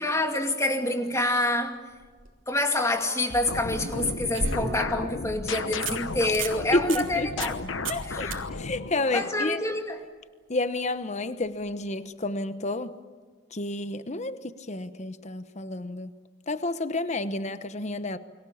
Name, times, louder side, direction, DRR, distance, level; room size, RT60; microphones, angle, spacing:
voice 1, 0.0-1.8 2.5-7.5 8.0-8.4 9.1-10.0, left 1 dB, 15° left, 2.5 m, -27 dB
sound 1, 1.9-2.3 3.7-5.0 5.4-5.5 5.8-6.0 6.3-6.6 6.9-7.0 7.4-7.6 7.8-8.0 8.3-8.4 11.5-11.6, right 3 dB, 85° right, 3.3 m, -33 dB
sound 2, 3.3-9.5, left 3 dB, 85° left, 1.2 m, -35 dB
voice 2, 6.7-7.4 7.9-9.6 10.5-13.0 13.5-16.1 16.5-18.2, left 2 dB, 35° left, 1.0 m, -30 dB
30.0 x 23.0 x 7.2 m
head